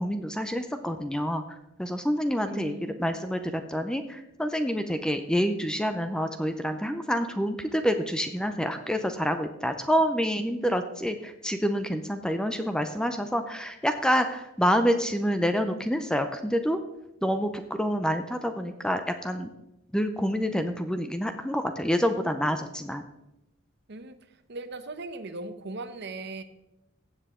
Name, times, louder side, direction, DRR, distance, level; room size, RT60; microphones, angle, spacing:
voice 1, 0.0-1.4 1.8-2.7 3.0-16.8 17.2-19.5 19.9-23.0, equal, 5° left, 8 dB, 0.5 m, -27 dB
voice 2, 2.5-3.3 23.9-24.2 24.5-26.4, right 2 dB, 50° right, 10 dB, 0.8 m, -38 dB
15.0 x 7.8 x 3.7 m, 0.92 s
head